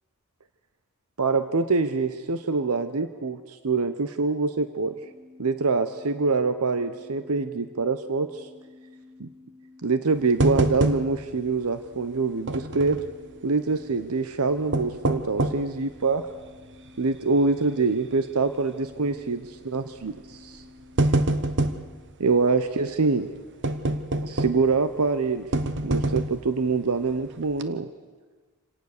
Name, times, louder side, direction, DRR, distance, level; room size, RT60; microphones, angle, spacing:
voice 1, 1.2-5.0 5.4-8.5 9.2-9.3 9.8-13.0 13.4-16.3 17.0-20.6 22.2-23.3 24.2-25.5 25.8-27.9, right 4 dB, 85° right, 10 dB, 0.9 m, -25 dB
sound 1, 5.0-22.0, left 3 dB, 20° right, 4.6 m, -51 dB
sound 2, 10.4-11.4 11.7-11.8 12.5-13.1 14.5-15.7 16.3-16.4 17.0-17.3 17.6-17.7 18.8-19.1 20.0-20.2 20.6-21.9 23.6-24.8 25.5-26.5 27.0-27.2 27.5-27.6, right 2 dB, 55° right, 1.0 m, -25 dB
27.0 x 18.0 x 6.7 m, 1.4 s
head